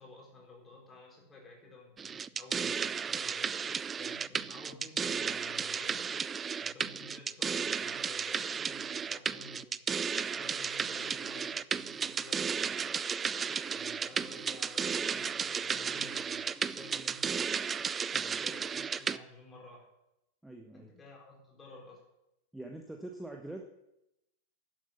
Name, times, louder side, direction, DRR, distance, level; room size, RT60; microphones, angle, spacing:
voice 1, 0.0-3.6 4.0-6.1 6.6-13.1 13.7-17.5 18.4-19.9 20.7-22.0, left 2 dB, 15° left, -1 dB, 4.3 m, -53 dB
sound 1, 2.0-19.2, right 6 dB, 20° right, 0.3 m, -34 dB
voice 2, 18.1-18.4 20.4-20.9 22.5-23.6, right 2 dB, 5° right, 3 dB, 1.1 m, -44 dB
11.5 x 7.9 x 7.1 m, 0.88 s
figure-of-eight pair, 90°, 0 cm